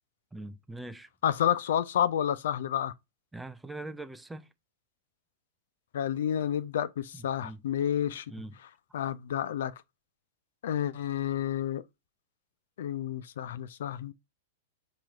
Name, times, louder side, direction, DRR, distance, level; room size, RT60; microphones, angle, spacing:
voice 1, 0.3-1.1 3.3-4.5 7.4-7.6 8.3-8.5, right 2 dB, 5° right, 0.5 m, -42 dB
voice 2, 1.2-2.9 5.9-8.3 8.9-9.7 10.6-11.8 12.8-14.1, left 10 dB, 65° left, 0.4 m, -30 dB
4.7 x 3.0 x 3.6 m
hypercardioid pair, 105°, 0 cm